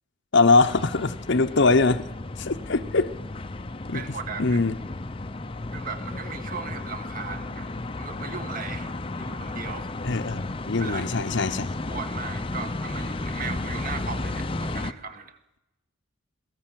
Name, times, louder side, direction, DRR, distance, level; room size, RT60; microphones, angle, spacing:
voice 1, 0.3-2.1 2.4-3.1 3.9-4.0 4.4-4.7 10.0-11.7, left 3 dB, 55° left, 9 dB, 0.8 m, -22 dB
sound 1, 0.6-14.9, left 2 dB, 25° left, 0.7 m, -33 dB
voice 2, 3.9-4.6 5.7-8.9 9.2-9.9 10.8-11.1 11.9-15.4, right 5 dB, 40° right, 9 dB, 1.7 m, -37 dB
22.5 x 16.5 x 7.6 m, 0.94 s
head